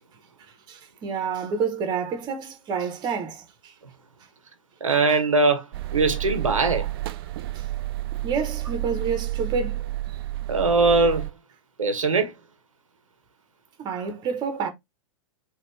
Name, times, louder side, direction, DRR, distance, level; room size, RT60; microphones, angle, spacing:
voice 1, 0.7-3.7 7.5-7.7 8.2-9.9 13.8-14.7, right 6 dB, 25° right, 1.0 m, -29 dB
voice 2, 4.8-5.6 5.9-6.9 10.5-11.2 11.8-12.3, right 3 dB, 75° right, 0.8 m, -21 dB
sound 1, 5.7-11.3, right 16 dB, 45° right, 0.4 m, -30 dB
4.1 x 2.4 x 3.3 m
figure-of-eight pair, 100°, 17 cm